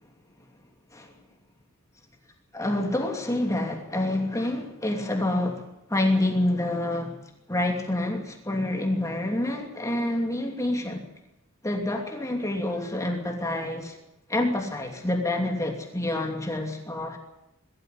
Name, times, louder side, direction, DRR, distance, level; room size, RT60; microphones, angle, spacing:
voice 1, 2.5-7.2 7.5-11.0 11.6-14.0 14.3-17.2, left 1 dB, 15° left, 2 dB, 2.8 m, -27 dB
21.5 x 13.5 x 9.6 m, 0.88 s
head